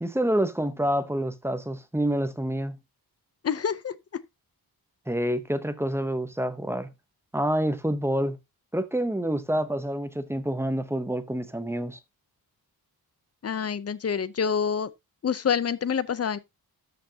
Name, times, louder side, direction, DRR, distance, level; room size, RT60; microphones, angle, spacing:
voice 1, 0.0-2.8 5.1-6.9 7.3-8.4 8.7-12.0, right 1 dB, 5° right, 0.8 m, -27 dB
voice 2, 3.4-3.9 13.4-14.9 15.2-16.4, left 7 dB, 40° left, 0.7 m, -27 dB
13.5 x 5.9 x 2.8 m
wide cardioid pair, 140°, 37 cm